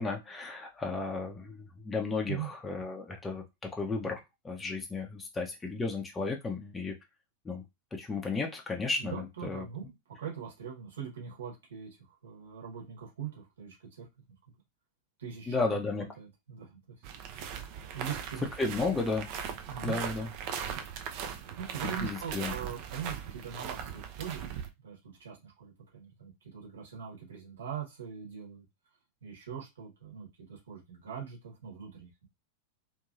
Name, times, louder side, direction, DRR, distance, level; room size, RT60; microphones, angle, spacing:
voice 1, 0.0-3.4 3.7-4.2 4.4-6.9 7.4-7.6 7.9-9.6 15.5-16.0 18.6-19.3 19.8-20.3 22.0-22.5, left 3 dB, 15° left, 2 dB, 0.6 m, -33 dB
voice 2, 9.0-14.1 15.2-15.8 16.2-16.8 17.3-17.6 17.9-18.5 19.7-20.0 21.3-24.4 24.8-28.6 29.2-32.3, right 8 dB, 65° right, -2 dB, 1.4 m, -42 dB
sound 1, 17.0-24.7, right 7 dB, 45° right, 0.5 m, -39 dB
2.9 x 2.6 x 2.4 m, 0.22 s
figure-of-eight pair, 90°, 0 cm